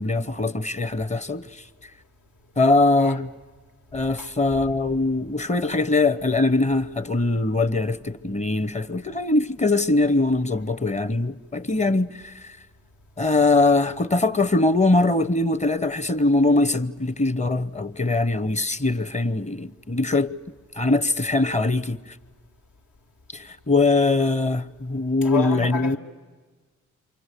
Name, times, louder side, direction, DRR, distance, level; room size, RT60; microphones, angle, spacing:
voice 1, 0.0-1.5 2.6-3.3 3.9-12.5 13.2-20.3 20.8-22.0 23.3-26.0, left 2 dB, 20° left, 0.8 m, -22 dB
voice 2, 4.2-4.6 25.2-26.0, left 4 dB, 75° left, 1.7 m, -31 dB
27.5 x 25.0 x 8.3 m
supercardioid pair, 60°, 31 cm